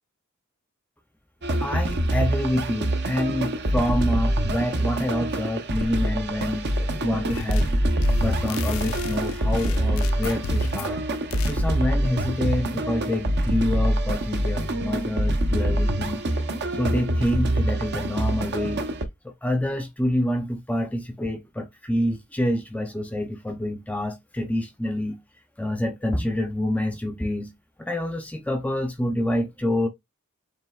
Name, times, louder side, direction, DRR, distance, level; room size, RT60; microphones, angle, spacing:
sound 1, 1.4-19.1, right 1 dB, 50° right, 0.7 m, -25 dB
voice 1, 1.6-7.7 8.2-11.0 11.5-16.2 16.7-18.8 19.2-25.2 25.6-27.5 27.8-29.9, left 1 dB, 5° left, 0.5 m, -27 dB
sound 2, 7.3-7.7 8.0-11.0 11.3-11.6, left 5 dB, 65° left, 0.4 m, -34 dB
7.4 x 3.1 x 2.3 m
head